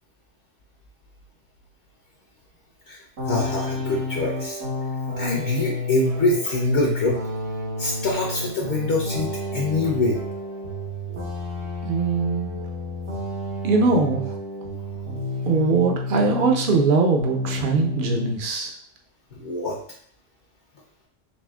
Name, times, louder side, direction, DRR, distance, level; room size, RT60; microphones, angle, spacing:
voice 1, 2.9-4.6 5.2-7.2 7.8-10.2 19.4-19.8, left 2 dB, 60° left, -3 dB, 1.1 m, -24 dB
sound 1, 3.2-16.9 17.2-18.4, left 2 dB, 65° right, 1.2 m, -30 dB
voice 2, 11.8-12.6 13.6-14.2 15.5-18.7, right 4 dB, 50° right, 2 dB, 0.7 m, -21 dB
4.2 x 3.3 x 2.3 m, 0.62 s
omnidirectional pair, 1.3 m